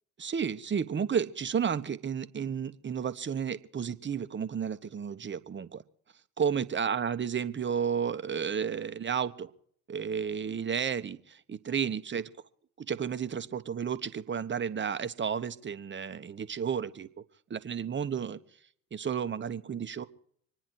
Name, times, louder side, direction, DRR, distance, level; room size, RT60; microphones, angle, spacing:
voice 1, 0.2-5.8 6.4-9.5 9.9-12.3 12.8-17.1 17.5-18.4 18.9-20.0, right 7 dB, 25° right, 12 dB, 1.2 m, -32 dB
26.0 x 10.0 x 4.7 m, 0.62 s
figure-of-eight pair, 55°, 41 cm